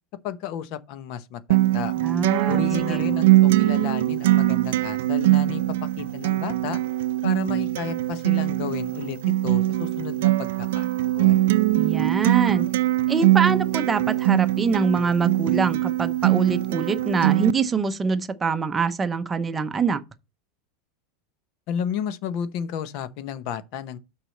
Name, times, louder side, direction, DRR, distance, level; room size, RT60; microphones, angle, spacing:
voice 1, 0.2-1.9 2.5-6.8 7.2-10.9 11.1-11.5 21.7-24.0, left 8 dB, 50° left, 0.9 m, -32 dB
Acoustic guitar, 1.5-17.5, right 16 dB, 75° right, 0.4 m, -22 dB
voice 2, 2.0-3.0 11.8-12.7 13.1-20.0, right 5 dB, 15° right, 0.7 m, -24 dB
6.2 x 4.8 x 6.4 m
supercardioid pair, 155°, 0 cm